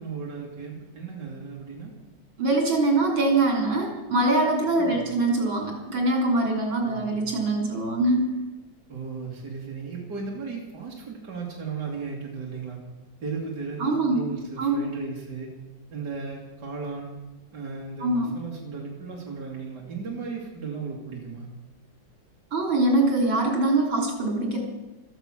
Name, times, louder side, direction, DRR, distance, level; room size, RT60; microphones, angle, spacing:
voice 1, 0.0-1.9 4.8-5.1 6.8-7.3 8.9-12.8 13.2-15.5 15.9-17.1 17.5-21.5, right 4 dB, 55° right, -3 dB, 3.1 m, -36 dB
voice 2, 2.4-8.4 13.8-14.2 14.6-14.9 18.0-18.3 22.5-24.6, right 2 dB, 75° right, 1 dB, 4.1 m, -23 dB
15.5 x 13.5 x 6.2 m, 1.1 s
omnidirectional pair, 2.2 m